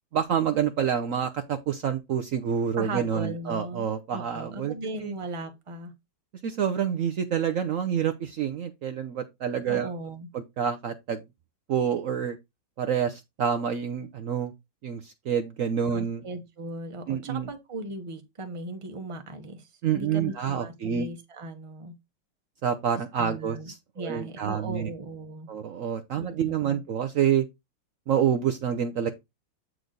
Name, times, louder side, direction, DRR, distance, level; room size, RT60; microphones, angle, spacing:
voice 1, 0.1-4.7 5.0-5.1 6.4-9.9 10.3-11.2 11.7-12.4 12.8-14.5 14.8-16.2 17.1-17.5 19.8-21.1 22.6-24.9 25.5-27.4 28.1-29.1, right 8 dB, 80° right, 0.7 m, -27 dB
voice 2, 2.8-3.9 4.1-5.9 9.7-10.3 15.9-21.9 23.2-25.5 26.2-26.8, right 2 dB, 25° right, 0.7 m, -38 dB
7.9 x 4.7 x 3.8 m
omnidirectional pair, 2.2 m